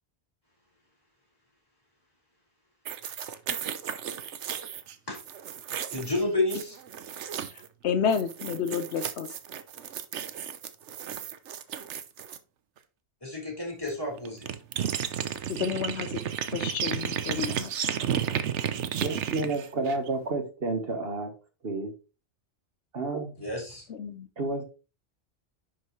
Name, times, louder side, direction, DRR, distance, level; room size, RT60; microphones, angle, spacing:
sound 1, 2.8-7.7 8.1-12.4 13.9-14.0 14.2-20.2, right 8 dB, 85° right, 1.1 m, -33 dB
voice 1, 5.9-6.8 13.2-14.5 23.4-23.8, left 2 dB, 20° left, -3 dB, 4.7 m, -30 dB
voice 2, 7.8-9.3 15.5-16.2 16.5-17.7 23.9-24.3, left 7 dB, 75° left, 11 dB, 1.0 m, -30 dB
voice 3, 19.0-21.3 21.6-21.9 22.9-23.3 24.4-24.6, right 2 dB, 60° right, 5 dB, 1.5 m, -30 dB
10.0 x 6.0 x 3.1 m, 0.32 s
omnidirectional pair, 1.2 m